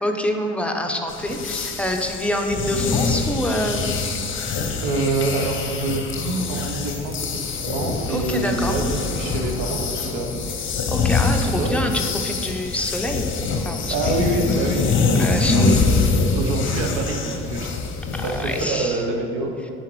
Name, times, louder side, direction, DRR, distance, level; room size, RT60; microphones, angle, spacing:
voice 1, 0.0-4.1 8.1-8.8 10.9-13.3 13.6-14.1 15.2-15.8 18.1-19.0, left 1 dB, 5° left, 3 dB, 0.6 m, -26 dB
sound 1, 1.1-18.6, left 4 dB, 35° left, 0.8 m, -24 dB
voice 2, 4.8-10.3 11.6-11.7 13.9-16.0 16.3-17.7 18.2-19.5, right 2 dB, 60° right, 2 dB, 1.0 m, -26 dB
9.4 x 4.2 x 3.2 m, 2.6 s
figure-of-eight pair, 55°, 36 cm